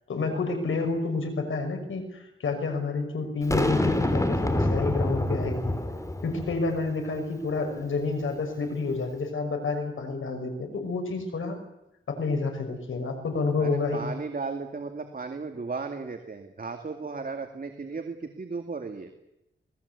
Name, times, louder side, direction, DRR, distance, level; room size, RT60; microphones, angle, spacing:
voice 1, 0.1-5.8 6.2-11.6 12.1-14.1, left 3 dB, 80° left, 5 dB, 6.0 m, -29 dB
Boom, 3.5-6.8, left 1 dB, 15° left, 3.4 m, -26 dB
voice 2, 13.6-19.1, right 4 dB, 45° right, 5 dB, 2.3 m, -35 dB
26.5 x 19.5 x 8.4 m, 0.88 s
wide cardioid pair, 90°, 20 cm